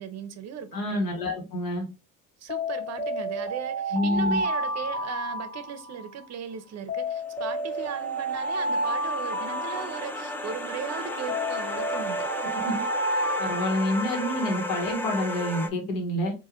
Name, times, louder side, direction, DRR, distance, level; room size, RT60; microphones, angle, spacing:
voice 1, 0.0-1.0 2.4-12.2, right 8 dB, 50° right, 0.6 m, -37 dB
voice 2, 0.7-1.9 3.9-4.4 12.5-12.7 13.4-16.3, left 1 dB, 85° left, 1.3 m, -27 dB
Alarm, 2.5-6.2 6.9-10.6 11.3-14.5, right 1 dB, 25° left, 0.9 m, -30 dB
sound 1, 7.2-15.7, left 1 dB, 5° left, 0.4 m, -34 dB
3.7 x 2.6 x 2.9 m
cardioid pair, 130°, 34 cm